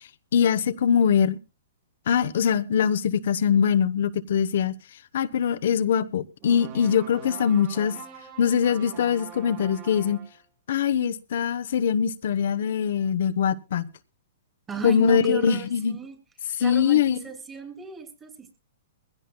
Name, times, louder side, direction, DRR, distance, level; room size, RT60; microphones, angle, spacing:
voice 1, 0.3-1.4 2.1-4.7 5.1-8.0 8.4-10.2 10.7-13.9 14.8-16.0 16.6-17.2, left 7 dB, 65° left, 0.9 m, -22 dB
sound 1, 6.4-10.4, right 8 dB, 35° right, 3.7 m, -43 dB
voice 2, 14.7-16.2 16.6-18.6, right 4 dB, 15° right, 3.1 m, -35 dB
22.0 x 16.0 x 2.2 m
hypercardioid pair, 135°, 0 cm